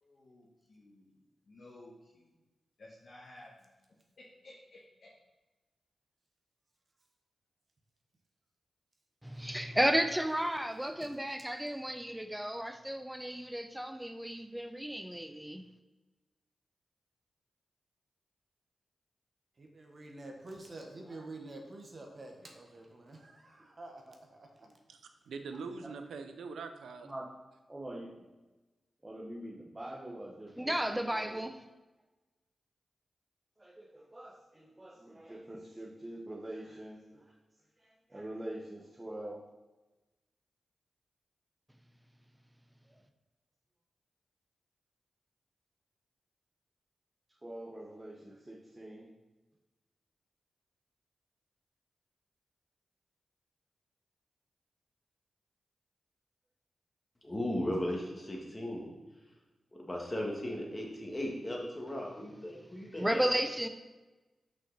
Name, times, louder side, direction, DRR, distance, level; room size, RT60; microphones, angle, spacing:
voice 1, 0.0-1.1 1.5-2.4 2.8-3.7 4.4-5.1, left 1 dB, 65° left, -6 dB, 1.4 m, -55 dB
voice 2, 9.2-15.6 30.6-31.6 63.0-63.7, right 1 dB, 5° right, 8 dB, 0.7 m, -33 dB
voice 3, 19.6-24.7, right 2 dB, 55° right, 2 dB, 1.3 m, -48 dB
voice 4, 24.9-27.1, right 4 dB, 90° right, 7 dB, 0.6 m, -43 dB
voice 5, 27.7-28.2 29.0-31.4 33.6-37.3 37.8-39.4 42.9-43.0 47.4-49.1, right 1 dB, 25° right, -4 dB, 1.3 m, -45 dB
voice 6, 57.2-58.9 59.8-63.2, left 1 dB, 25° left, -1 dB, 2.0 m, -36 dB
6.0 x 5.6 x 4.2 m, 1.1 s
cardioid pair, 45°, 0 cm